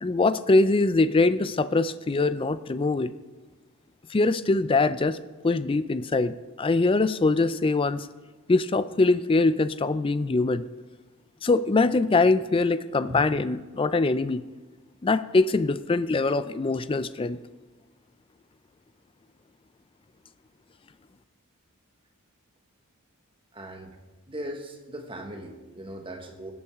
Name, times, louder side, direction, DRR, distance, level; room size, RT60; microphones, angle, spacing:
voice 1, 0.0-3.1 4.1-5.2 5.4-8.1 8.5-10.6 11.4-14.4 15.0-17.4, left 3 dB, 25° left, 13 dB, 0.4 m, -23 dB
voice 2, 23.5-24.0 24.3-26.5, right 1 dB, 25° right, 4 dB, 1.2 m, -38 dB
18.0 x 8.6 x 3.6 m, 1.3 s
head